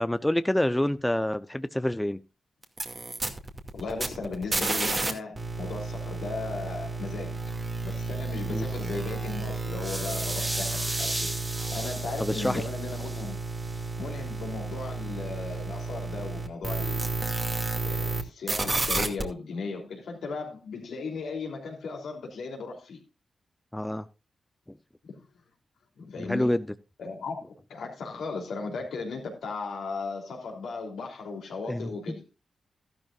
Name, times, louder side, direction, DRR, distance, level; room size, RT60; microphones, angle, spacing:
voice 1, 0.0-2.2 8.5-8.7 12.2-12.6 23.7-24.0 26.2-26.7 31.7-31.9, left 1 dB, 10° left, 0.7 m, -27 dB
sound 1, 2.6-5.1 5.4-18.2 18.5-19.2, right 3 dB, 40° right, 2.3 m, -32 dB
voice 2, 3.7-7.4 7.8-11.3 11.7-13.4 14.0-17.1 17.8-23.0 25.1-25.2 26.0-26.5 27.0-32.2, left 4 dB, 80° left, 3.3 m, -36 dB
sound 2, 9.8-13.9, right 1 dB, 20° right, 1.2 m, -35 dB
13.5 x 12.0 x 2.5 m
supercardioid pair, 40°, 0 cm